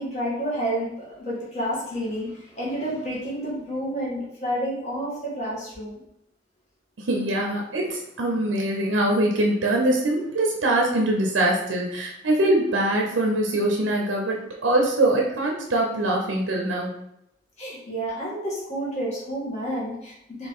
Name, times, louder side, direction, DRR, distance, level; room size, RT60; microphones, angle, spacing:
voice 1, 0.0-6.0 17.6-20.5, right 1 dB, 35° left, -5 dB, 1.6 m, -30 dB
voice 2, 7.0-16.9, right 1 dB, 85° right, 0 dB, 0.6 m, -23 dB
4.3 x 2.8 x 3.6 m, 0.79 s
head